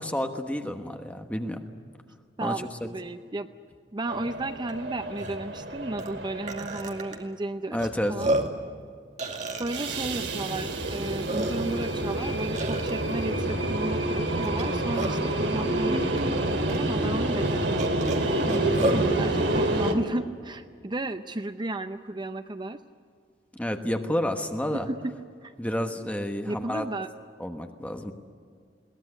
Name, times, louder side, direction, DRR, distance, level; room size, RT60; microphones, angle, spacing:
voice 1, 0.0-1.6 2.4-2.9 7.7-8.3 18.4-19.0 23.5-24.9 25.6-26.9 27.4-28.1, left 1 dB, 10° left, 5 dB, 1.2 m, -30 dB
voice 2, 2.4-3.5 3.9-7.8 8.1-8.3 9.6-18.0 18.9-22.8 24.7-25.1 25.4-25.5 26.4-27.1, right 2 dB, 25° right, 10 dB, 0.6 m, -33 dB
sound 1, 4.1-7.2 9.6-19.9, right 1 dB, 75° right, 2.6 m, -28 dB
Burping eructation, 4.7-4.8 5.1-5.4 6.0-6.1 6.5-7.2 7.8-7.9 8.2-8.6 9.2-10.2 10.9-11.0 11.3-11.8 12.5-12.9 14.4-15.3 16.2-16.3 16.7-16.8 17.8-19.1, right 2 dB, 45° right, 2.4 m, -30 dB
22.0 x 18.5 x 9.8 m, 2.1 s
head